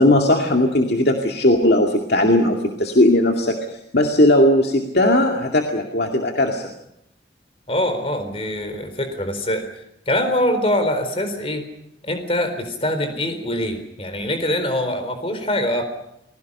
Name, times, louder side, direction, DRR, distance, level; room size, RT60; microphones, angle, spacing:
voice 1, 0.0-3.6 3.9-6.7, left 1 dB, 65° left, 2 dB, 2.4 m, -17 dB
voice 2, 7.7-9.6 10.1-11.6 12.0-15.8, left 1 dB, 30° left, 8 dB, 4.2 m, -23 dB
29.5 x 22.0 x 5.6 m, 0.81 s
head